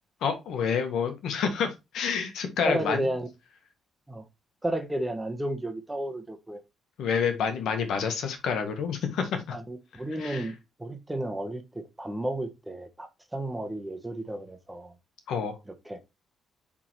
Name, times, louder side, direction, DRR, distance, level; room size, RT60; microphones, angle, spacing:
voice 1, 0.2-3.0 7.0-9.6 10.2-10.4 15.3-15.5, left 6 dB, 75° left, 1.4 m, -28 dB
voice 2, 2.6-3.3 4.1-4.2 4.6-6.6 9.5-14.9 15.8-16.0, right 1 dB, 10° right, 1.2 m, -32 dB
8.3 x 3.7 x 3.1 m
cardioid pair, 90°, 0 cm